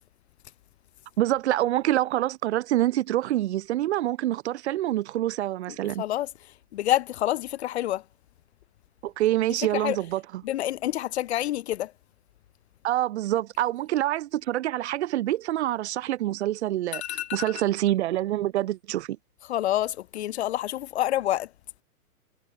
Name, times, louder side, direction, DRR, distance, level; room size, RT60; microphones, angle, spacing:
voice 1, 1.2-6.0 9.0-10.2 12.8-17.0 17.3-19.2, right 14 dB, 45° right, 6.4 m, -26 dB
voice 2, 6.0-8.0 9.7-10.0 10.4-11.9 16.9-17.5 19.4-21.5, left 13 dB, 45° left, 2.5 m, -28 dB
hypercardioid pair, 165°, 46 cm